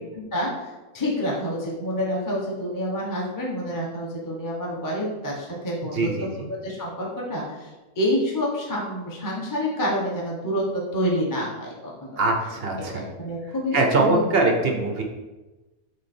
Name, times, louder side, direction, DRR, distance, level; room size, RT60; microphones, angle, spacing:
voice 1, 0.1-10.6 10.9-12.2 12.9-14.2, equal, 15° left, -4 dB, 1.0 m, -28 dB
voice 2, 5.9-6.5 12.2-13.0 13.7-15.0, right 2 dB, 50° right, 2 dB, 0.7 m, -22 dB
6.5 x 3.8 x 4.4 m, 1.1 s
omnidirectional pair, 1.8 m